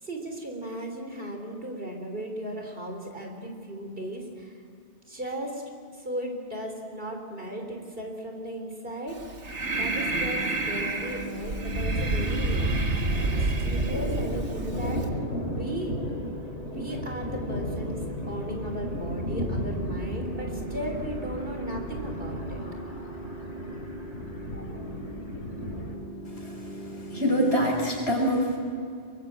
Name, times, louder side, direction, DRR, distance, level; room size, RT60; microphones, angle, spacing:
voice 1, 0.0-4.6 5.1-5.6 5.9-9.2 9.8-12.7 13.2-15.2 15.5-15.9 16.7-22.9, right 1 dB, 55° right, 3 dB, 4.0 m, -36 dB
Breathing, 9.1-15.1, right 2 dB, 80° right, 2.0 m, -28 dB
sound 1, 9.6-27.6, right 1 dB, 40° left, 5.2 m, -40 dB
Thunder, 10.3-10.5 10.8-10.9 11.2-12.7 13.0-25.9, left 1 dB, 80° left, 5.0 m, -35 dB
voice 2, 26.9-28.6, equal, 65° left, 0 dB, 6.4 m, -25 dB
23.5 x 22.5 x 8.8 m, 2.4 s
omnidirectional pair, 1.2 m